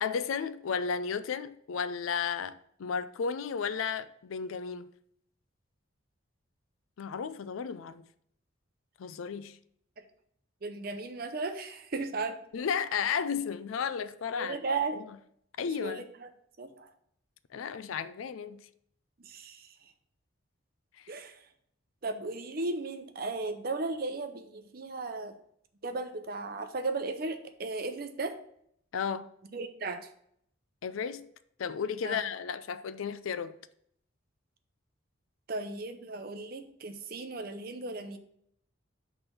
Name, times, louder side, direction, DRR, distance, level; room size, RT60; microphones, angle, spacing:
voice 1, 0.0-4.9 7.0-8.1 9.0-9.6 12.5-14.6 15.0-15.1 15.6-16.0 17.5-18.6 28.9-29.3 30.8-31.3 31.6-33.5, left 6 dB, 80° left, 0.4 m, -33 dB
voice 2, 10.6-12.4 14.4-15.0 15.6-16.3 16.6-16.9 19.2-19.7 21.1-21.3 22.0-25.4 25.8-28.4 29.5-30.1 32.0-32.2 35.5-38.2, right 3 dB, 45° right, 0.6 m, -36 dB
6.1 x 3.4 x 5.9 m
head